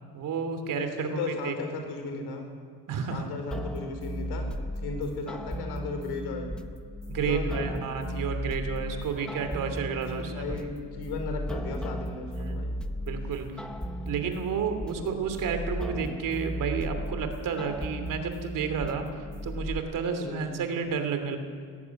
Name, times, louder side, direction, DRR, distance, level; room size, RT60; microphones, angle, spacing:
voice 1, 0.1-1.5 2.9-3.3 7.1-10.6 12.5-12.6 13.0-13.6 14.1-19.0 19.4-21.4, right 6 dB, 55° right, 7 dB, 3.0 m, -31 dB
voice 2, 0.7-2.4 3.1-4.5 4.8-6.5 7.2-7.9 8.9-9.5 10.2-12.7 15.0-15.5 15.9-16.1 20.2-20.5, left 4 dB, 70° left, 5 dB, 4.5 m, -36 dB
sound 1, 3.5-19.8, equal, ahead, 0.9 m, -35 dB
19.0 x 14.5 x 9.7 m, 2.1 s
cardioid pair, 130°, 40 cm